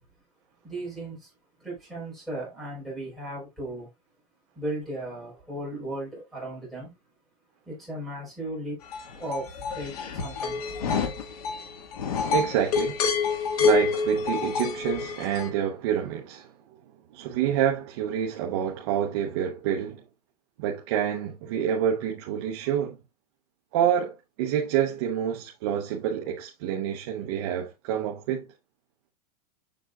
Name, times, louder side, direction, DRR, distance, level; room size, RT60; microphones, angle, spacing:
voice 1, 0.6-1.3 1.6-3.9 4.5-6.9 7.7-8.8 9.1-10.9, right 1 dB, ahead, 4.2 m, -36 dB
sound 1, 8.9-15.5, left 5 dB, 65° left, 1.7 m, -28 dB
voice 2, 12.3-13.1 13.6-16.5 17.1-20.0 20.6-23.0 23.7-28.5, right 9 dB, 40° right, 0.9 m, -27 dB
7.2 x 7.0 x 2.4 m
supercardioid pair, 175°, 21 cm